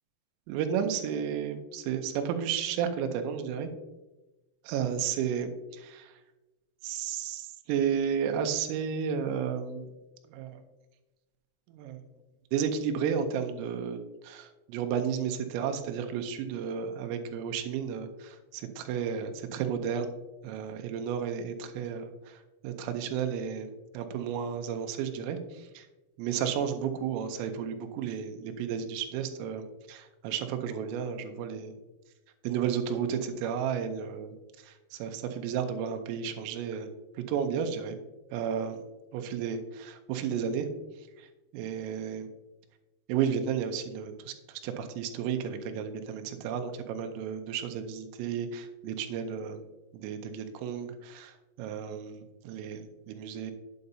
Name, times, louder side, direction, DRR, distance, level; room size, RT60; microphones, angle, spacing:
voice 1, 0.5-3.7 4.7-6.2 6.8-9.9 10.3-10.6 11.7-12.0 12.5-20.1 20.4-25.9 26.2-31.7 32.4-34.3 34.6-36.9 37.2-38.0 38.3-38.8 39.1-40.7 41.2-41.3 41.5-42.3 43.1-49.6 49.9-53.5, right 7 dB, 85° right, 6 dB, 3.3 m, -33 dB
8.6 x 8.2 x 2.7 m, 1.1 s
omnidirectional pair, 5.8 m